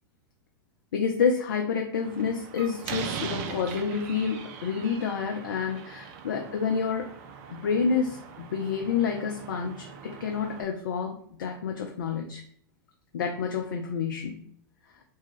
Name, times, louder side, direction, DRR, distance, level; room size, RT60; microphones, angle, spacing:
voice 1, 0.9-7.1 7.5-12.4 13.1-14.4, left 6 dB, 65° left, 2 dB, 0.4 m, -29 dB
Slam, 2.0-10.6, right 7 dB, 45° right, 0.4 m, -41 dB
2.6 x 2.2 x 3.1 m, 0.62 s
figure-of-eight pair, 90°, 12 cm